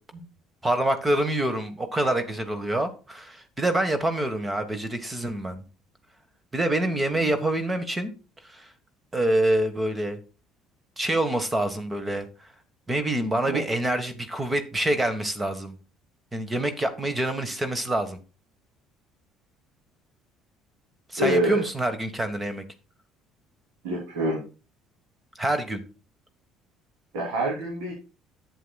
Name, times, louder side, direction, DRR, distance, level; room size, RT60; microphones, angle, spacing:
voice 1, 0.6-5.6 6.5-8.1 8.4-8.7 9.1-10.2 11.0-12.3 12.9-15.7 16.3-18.2 21.1-22.6 25.4-25.8, right 1 dB, 20° right, 9 dB, 1.4 m, -26 dB
voice 2, 21.2-21.6 23.8-24.4 27.1-27.9, right 1 dB, 85° right, -2 dB, 3.1 m, -26 dB
11.0 x 7.7 x 2.3 m, 0.32 s
supercardioid pair, 75°, 0 cm